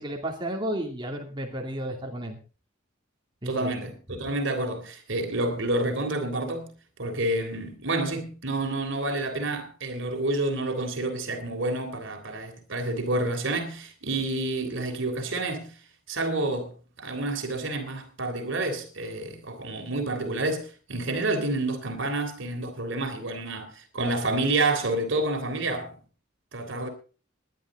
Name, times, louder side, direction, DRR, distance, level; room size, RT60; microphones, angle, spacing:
voice 1, 0.0-2.4 3.4-3.7, right 1 dB, 25° right, 2.7 m, -32 dB
voice 2, 3.4-6.7 7.0-15.7 16.1-25.9 26.5-26.9, right 2 dB, 65° right, 3.4 m, -29 dB
20.0 x 11.0 x 3.8 m
head